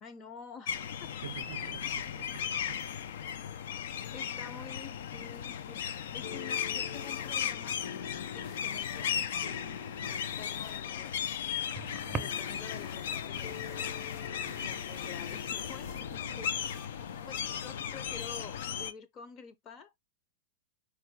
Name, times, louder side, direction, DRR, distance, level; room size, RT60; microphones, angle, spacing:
voice 1, 0.0-1.2 1.8-1.9 4.1-7.8 8.3-9.6 10.0-11.1 12.1-14.2 14.6-16.8 17.3-19.9, left 6 dB, 25° left, 0.6 m, -49 dB
sound 1, 0.7-18.9, left 8 dB, 75° left, 0.5 m, -36 dB
voice 2, 1.2-2.8 14.5-15.0, right 11 dB, 75° right, 0.4 m, -47 dB
sound 2, 5.8-18.2, left 6 dB, 50° left, 1.2 m, -47 dB
sound 3, 10.2-18.4, right 4 dB, 15° right, 0.5 m, -48 dB
4.6 x 2.2 x 4.6 m
supercardioid pair, 150°, 0 cm